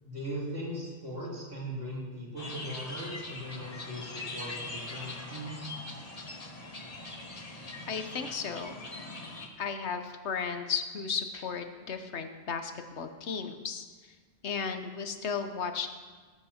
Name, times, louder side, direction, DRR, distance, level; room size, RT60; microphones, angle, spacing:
voice 1, 0.0-5.7, equal, 60° right, -5 dB, 3.7 m, -39 dB
sound 1, 2.4-9.5, left 2 dB, 35° left, 1.3 m, -42 dB
voice 2, 7.9-8.8 9.6-14.1 14.4-15.9, left 6 dB, 80° left, 8 dB, 1.3 m, -35 dB
19.0 x 8.2 x 4.3 m, 1.4 s
omnidirectional pair, 1.1 m